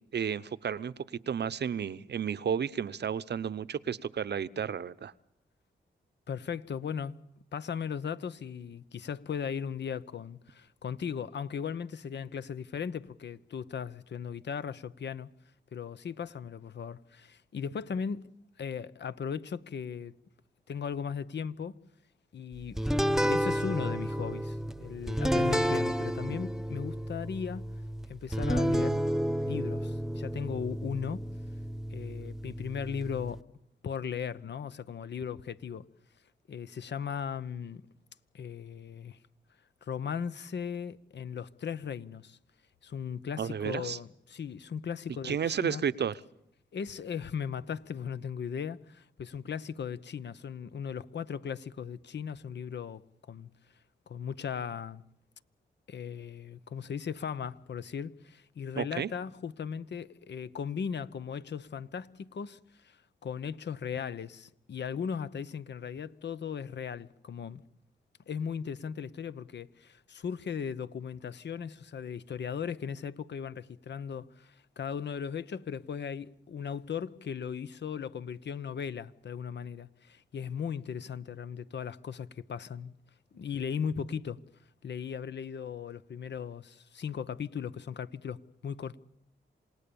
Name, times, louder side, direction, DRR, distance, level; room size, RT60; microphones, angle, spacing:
voice 1, 0.1-0.9 1.3-5.1 26.3-26.4 43.4-44.0 45.2-46.2 58.8-59.1, right 7 dB, 65° right, 0.8 m, -32 dB
voice 2, 6.3-7.2 7.5-15.3 15.7-18.3 18.6-20.1 20.7-21.8 22.3-22.8 23.3-27.7 28.1-29.0 29.4-31.2 31.9-33.4 33.8-35.9 36.5-37.8 38.3-39.2 39.8-42.4 42.8-45.8 46.7-53.0 53.3-53.5 54.1-55.0 55.9-67.6 68.3-83.0 83.3-84.4 84.8-89.0, left 7 dB, 70° left, 0.9 m, -37 dB
sound 1, 22.8-33.4, equal, ahead, 1.0 m, -31 dB
28.0 x 18.0 x 7.0 m
cardioid pair, 55°, 19 cm